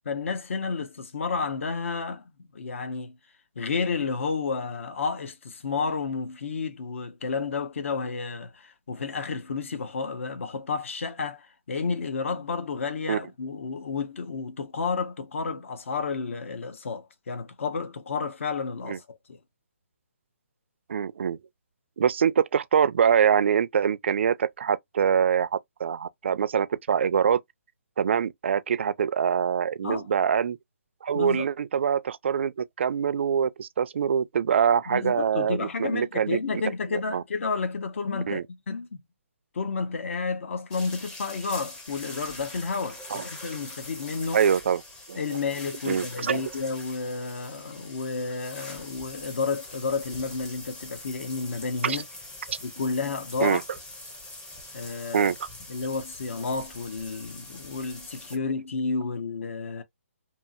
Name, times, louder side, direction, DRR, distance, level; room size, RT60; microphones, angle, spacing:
voice 1, 0.1-2.2 2.5-3.2 3.6-19.4 29.8-30.1 31.1-31.5 34.9-39.0 39.5-44.4 45.1-52.0 52.6-53.6 54.7-55.3 55.7-59.8, left 4 dB, 60° left, 0.8 m, -31 dB
voice 2, 20.9-21.4 22.0-25.5 25.8-27.4 28.0-30.6 31.0-36.6 36.9-37.2 38.3-38.4 43.1-43.2 44.3-44.8 45.1-45.2 45.9-46.4 51.8-52.0 52.5-52.6 53.4-53.6 55.1-55.5, right 7 dB, 50° right, 0.3 m, -24 dB
sound 1, 40.7-58.4, left 2 dB, 10° left, 0.6 m, -43 dB
2.8 x 2.7 x 2.4 m
hypercardioid pair, 155°, 8 cm